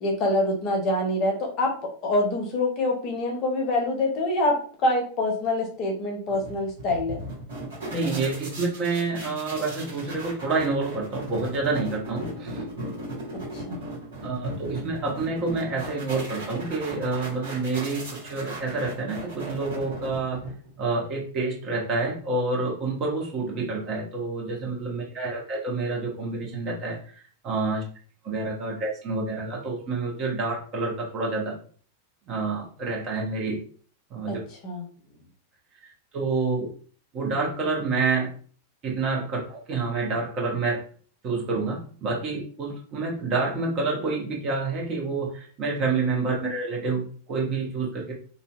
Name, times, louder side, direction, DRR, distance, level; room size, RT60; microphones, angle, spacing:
voice 1, 0.0-1.7 2.0-4.6 4.8-7.2 13.3-13.9 34.3-34.4 34.6-34.9, left 1 dB, 35° left, 1 dB, 0.7 m, -25 dB
sound 1, 6.5-20.8, right 1 dB, 70° right, 1.2 m, -37 dB
voice 2, 7.9-12.6 14.2-20.4 20.8-27.0 27.4-27.8 28.2-31.6 32.3-33.6 34.1-34.4 36.1-36.7 37.1-38.3 38.8-40.8 41.2-48.1, right 3 dB, 35° right, -2 dB, 0.8 m, -28 dB
2.6 x 2.2 x 2.3 m, 0.44 s
figure-of-eight pair, 90°, 0 cm